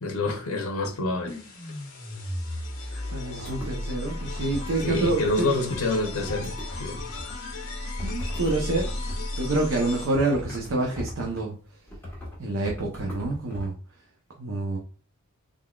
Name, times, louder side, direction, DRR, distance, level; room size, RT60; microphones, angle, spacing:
voice 1, 0.0-1.4 2.9-3.0 4.8-6.5 6.8-7.0, left 2 dB, 80° left, 0.9 m, -27 dB
sound 1, 1.3-10.4, left 1 dB, 60° left, 1.1 m, -34 dB
voice 2, 3.1-5.5 8.0-8.9 9.4-11.5 12.4-13.7 14.4-14.8, right 2 dB, 65° right, 0.7 m, -27 dB
sound 2, 3.4-3.7 4.2-5.4 5.7-7.6 8.0-9.4 10.1-11.4 11.9-12.4 12.6-13.7, left 1 dB, 10° left, 1.4 m, -39 dB
3.7 x 3.5 x 2.3 m
head